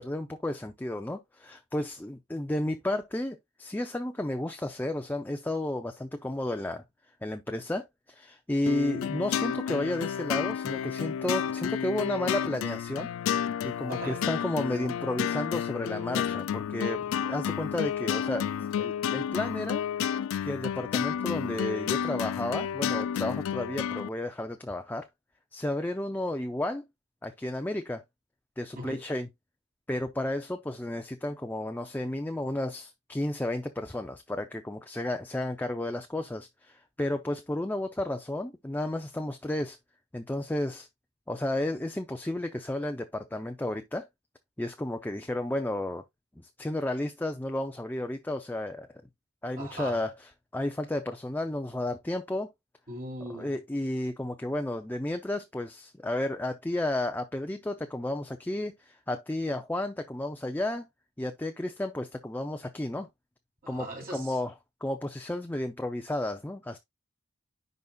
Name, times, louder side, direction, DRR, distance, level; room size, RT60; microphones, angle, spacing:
voice 1, 0.0-6.8 7.2-13.1 13.6-18.5 18.8-19.9 20.4-25.1 25.5-26.8 27.2-28.0 28.6-29.3 29.9-39.8 40.1-40.9 41.3-44.1 44.6-46.0 46.6-48.9 49.4-50.1 50.5-52.5 53.3-60.9 61.2-63.1 63.7-64.5 64.8-66.8, left 1 dB, 10° left, 0.5 m, -32 dB
sound 1, 8.7-24.1, left 8 dB, 80° left, 0.3 m, -31 dB
voice 2, 13.9-14.2 28.7-29.0 49.6-50.0 52.9-53.6 63.6-64.4, right 1 dB, 45° right, 3.1 m, -39 dB
10.5 x 4.0 x 2.3 m
head